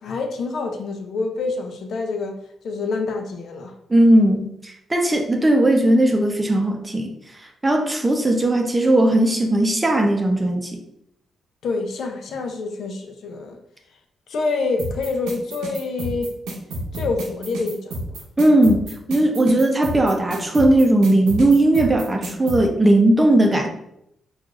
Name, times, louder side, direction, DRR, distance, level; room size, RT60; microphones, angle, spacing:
voice 1, 0.0-2.4 2.6-3.7 11.6-13.6 14.3-16.3 16.9-18.2, left 3 dB, 70° left, 0.5 m, -27 dB
voice 2, 3.9-7.1 7.6-10.8 18.4-23.7, right 1 dB, 25° right, 0.7 m, -17 dB
sound 1, 14.8-22.6, right 1 dB, 85° right, 0.7 m, -30 dB
4.5 x 2.4 x 2.4 m
supercardioid pair, 50°, 0 cm